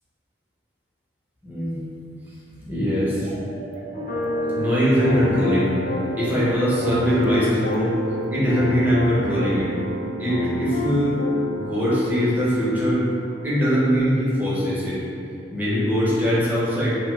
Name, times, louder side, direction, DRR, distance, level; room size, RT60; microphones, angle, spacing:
voice 1, 1.4-1.8 2.6-3.3 4.5-5.7 6.2-7.9 8.3-9.7 10.2-11.2 11.5-13.0 13.4-15.0 15.5-17.0, equal, 10° right, -10 dB, 0.8 m, -21 dB
sound 1, 3.2-11.2, right 3 dB, 85° right, 0.3 m, -35 dB
sound 2, 3.9-14.1, left 1 dB, 50° left, 0.5 m, -30 dB
2.7 x 2.4 x 3.1 m, 2.6 s
head